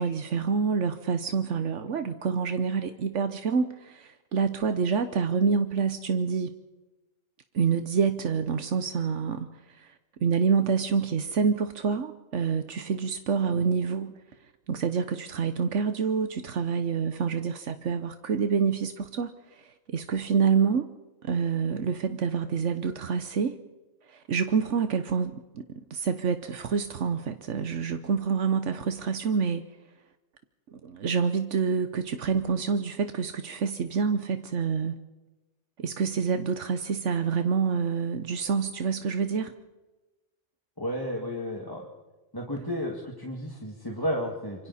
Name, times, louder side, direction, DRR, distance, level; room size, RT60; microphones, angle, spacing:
voice 1, 0.0-6.5 7.5-9.5 9.8-9.9 10.2-14.2 14.7-20.9 21.2-23.6 24.1-29.6 30.7-34.9 35.8-39.5, right 6 dB, 80° right, 9 dB, 1.3 m, -27 dB
voice 2, 40.8-41.9 42.3-44.7, equal, 20° left, -1 dB, 2.2 m, -32 dB
26.5 x 24.5 x 4.2 m, 1.1 s
omnidirectional pair, 1.2 m